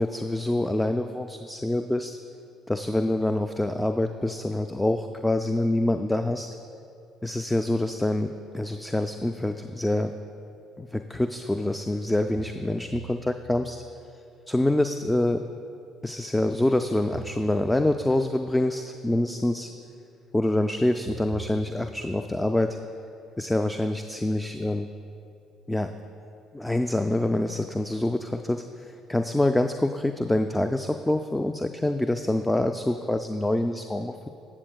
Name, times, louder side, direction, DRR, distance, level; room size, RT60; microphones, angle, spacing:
voice 1, 0.0-2.2 2.7-6.6 7.2-10.1 10.8-13.8 14.5-15.4 16.0-19.7 20.3-22.8 23.4-24.9 25.7-25.9 26.5-34.3, left 1 dB, 10° left, 7 dB, 0.3 m, -26 dB
sound 1, 12.4-14.0 17.1-18.2 21.1-22.4, right 7 dB, 65° right, 0.4 m, -44 dB
15.5 x 6.9 x 2.2 m, 2.5 s
figure-of-eight pair, 50°, 0 cm